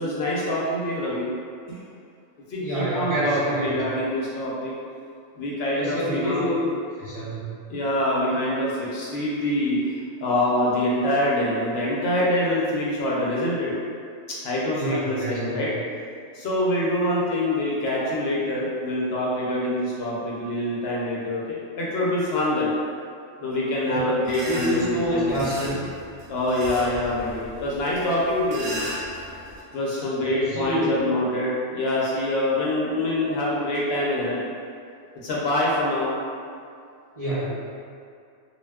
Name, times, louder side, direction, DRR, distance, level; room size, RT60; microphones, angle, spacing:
voice 1, 0.0-1.3 1.7-1.8 2.5-4.7 5.3-6.5 7.7-9.8 10.2-13.7 14.3-15.7 16.3-22.7 23.4-25.4 26.3-28.9 29.7-34.4 35.2-36.1, left 1 dB, 65° left, -6 dB, 0.7 m, -25 dB
voice 2, 2.6-3.7 5.7-6.6 7.0-7.4 14.7-15.6 23.8-24.0 24.4-25.7 30.2-31.0 37.2-37.5, equal, 40° right, -12 dB, 0.5 m, -27 dB
sound 1, 24.2-29.6, equal, 65° right, 0.9 m, -37 dB
2.3 x 2.1 x 3.3 m, 2.3 s
omnidirectional pair, 1.3 m